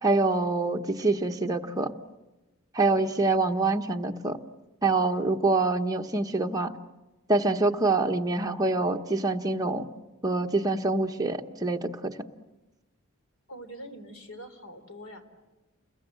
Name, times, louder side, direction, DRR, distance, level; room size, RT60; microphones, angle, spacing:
voice 1, 0.0-1.9 2.7-4.4 4.8-6.7 7.3-9.9 10.2-12.2, right 3 dB, 15° right, 3 dB, 1.1 m, -25 dB
voice 2, 13.5-15.3, equal, 75° left, 8 dB, 3.2 m, -44 dB
30.0 x 22.0 x 7.7 m, 1.1 s
head